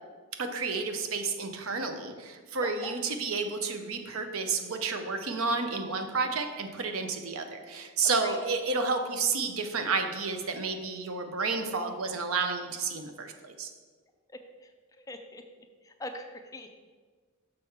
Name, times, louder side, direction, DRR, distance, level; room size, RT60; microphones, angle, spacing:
voice 1, 0.4-13.7, right 4 dB, 65° right, 6 dB, 0.7 m, -31 dB
voice 2, 2.6-2.9 8.2-8.4 14.6-14.7 15.0-15.4 15.8-16.7, left 2 dB, 15° left, 6 dB, 0.4 m, -42 dB
6.6 x 3.7 x 5.7 m, 1.5 s
head